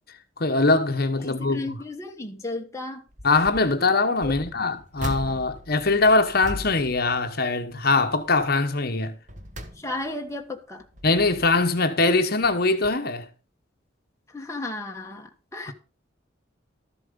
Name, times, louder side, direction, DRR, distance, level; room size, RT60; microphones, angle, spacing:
voice 1, 0.4-1.7 3.2-9.2 11.0-13.3, left 3 dB, 55° left, 1.1 m, -22 dB
voice 2, 1.2-3.0 4.2-4.4 9.8-10.8 14.3-15.7, left 2 dB, 15° left, 1.4 m, -34 dB
sound 1, 3.1-3.7 4.2-7.8 8.2-8.5 9.0-10.3 10.8-11.8 12.4-12.6 12.8-12.9, equal, 40° right, 1.5 m, -39 dB
13.0 x 7.5 x 5.2 m
head